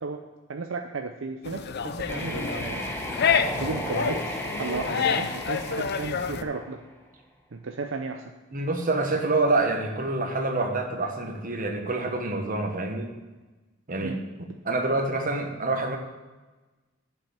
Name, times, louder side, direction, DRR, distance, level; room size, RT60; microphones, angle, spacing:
voice 1, 0.5-2.9 3.6-6.8 7.5-8.2 14.0-14.2, right 4 dB, 70° right, 4 dB, 0.6 m, -34 dB
sound 1, 1.4-6.4, left 6 dB, 55° left, 0.5 m, -28 dB
sound 2, 2.0-7.0, equal, 10° left, 1.0 m, -35 dB
voice 2, 8.5-13.1 13.9-14.2 14.6-16.0, right 2 dB, 45° right, 4 dB, 1.2 m, -26 dB
7.4 x 5.6 x 7.5 m, 1.2 s
head